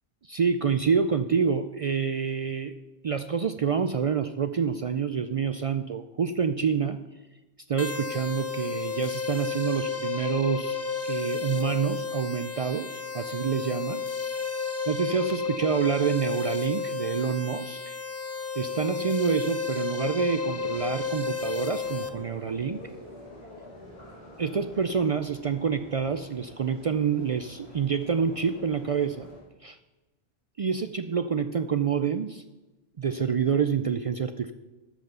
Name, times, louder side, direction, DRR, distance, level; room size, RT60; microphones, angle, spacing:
voice 1, 0.2-2.7 3.0-7.0 7.7-10.8 11.0-14.0 14.9-18.0 18.6-22.8 24.4-29.3 29.6-29.8 30.6-32.4 33.0-34.5, right 6 dB, 60° right, 10 dB, 0.3 m, -27 dB
sound 1, 7.8-22.1, left 5 dB, 15° left, 0.6 m, -32 dB
sound 2, 20.3-29.4, left 1 dB, 45° left, 4.3 m, -47 dB
13.5 x 5.7 x 6.8 m, 1.1 s
omnidirectional pair, 1.1 m